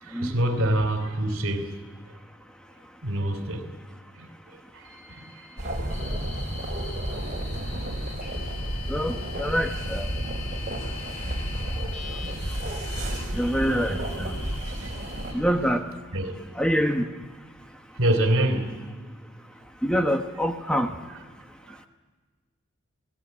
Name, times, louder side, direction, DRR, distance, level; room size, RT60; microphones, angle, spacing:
voice 1, 0.0-1.7 3.0-3.7 4.1-4.3 4.7-5.2 14.7-14.9 15.3-15.4 16.1-16.4 18.0-18.7, right 1 dB, 65° right, 3.2 m, -26 dB
sound 1, 4.8-15.3, left 5 dB, 35° left, 4.8 m, -42 dB
sound 2, 5.6-15.3, right 1 dB, 35° right, 5.4 m, -31 dB
voice 2, 8.9-10.1 13.3-14.4 15.3-15.9 16.5-17.1 19.8-20.9, equal, 5° left, 0.9 m, -25 dB
29.5 x 19.0 x 9.3 m
head